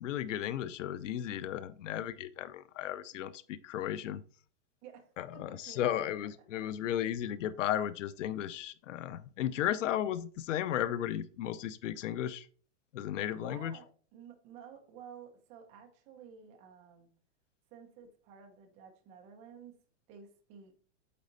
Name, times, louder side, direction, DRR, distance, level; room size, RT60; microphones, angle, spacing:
voice 1, 0.0-4.2 5.2-12.5 12.9-13.8, left 11 dB, 90° left, 0.7 m, -35 dB
voice 2, 4.8-6.1 6.5-6.6 13.3-17.1 17.7-19.8 20.1-20.7, right 7 dB, 20° right, 0.8 m, -52 dB
8.6 x 4.2 x 4.0 m
supercardioid pair, 180°, 36 cm